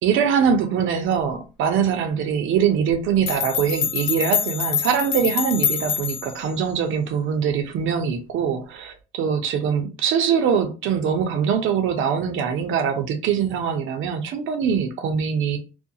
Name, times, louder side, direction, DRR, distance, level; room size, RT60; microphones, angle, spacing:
voice 1, 0.0-15.6, right 7 dB, 85° right, 0.6 m, -23 dB
sound 1, 2.9-3.0 3.3-6.4, left 8 dB, 75° left, 0.5 m, -25 dB
2.4 x 2.2 x 2.7 m
cardioid pair, 90°, 20 cm